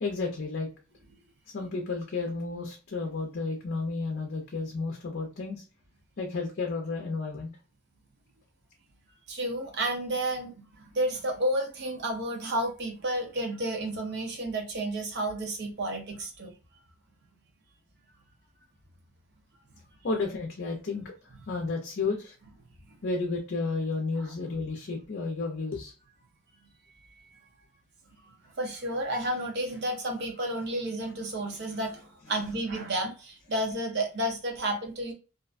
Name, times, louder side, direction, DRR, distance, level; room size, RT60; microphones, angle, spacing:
voice 1, 0.0-0.7 1.5-5.6 6.2-7.5 20.0-21.1 21.5-22.4 23.0-25.9, left 3 dB, 50° left, 0.5 m, -32 dB
voice 2, 9.3-16.5 28.6-35.1, right 1 dB, 55° right, 0.7 m, -31 dB
2.5 x 2.1 x 2.4 m
head